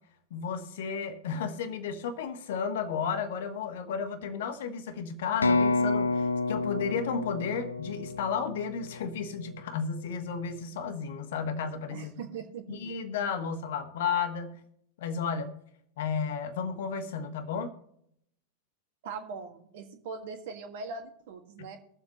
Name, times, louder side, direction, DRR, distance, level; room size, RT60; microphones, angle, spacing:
voice 1, 0.3-12.3 12.7-14.5 15.0-15.6 16.0-17.7, left 6 dB, 55° left, 9 dB, 1.3 m, -33 dB
sound 1, 5.4-9.2, left 3 dB, 75° left, 0.5 m, -29 dB
voice 2, 11.9-12.8 19.0-21.8, right 5 dB, 55° right, 5 dB, 1.6 m, -41 dB
22.0 x 7.4 x 3.0 m, 0.73 s
figure-of-eight pair, 90°, 0 cm